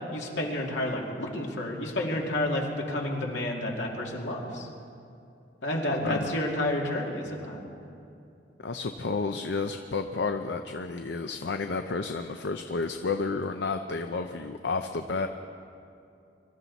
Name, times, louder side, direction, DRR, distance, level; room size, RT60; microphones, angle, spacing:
voice 1, 0.1-4.7 5.6-7.6, left 1 dB, 90° left, -1 dB, 2.5 m, -30 dB
voice 2, 5.9-6.4 8.6-15.3, left 4 dB, 70° left, 7 dB, 0.6 m, -31 dB
24.0 x 13.5 x 4.1 m, 2.6 s
head